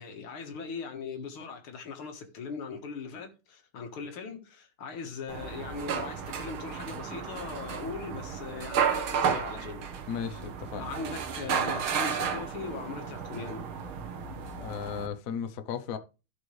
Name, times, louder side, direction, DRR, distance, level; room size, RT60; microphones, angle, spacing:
voice 1, 0.0-9.9 10.8-13.7, left 5 dB, 85° left, 2.4 m, -40 dB
sound 1, 5.3-15.1, right 7 dB, 75° right, 2.0 m, -33 dB
voice 2, 10.1-10.8 14.5-16.0, left 7 dB, 60° left, 1.0 m, -35 dB
15.5 x 5.4 x 3.2 m
omnidirectional pair, 2.3 m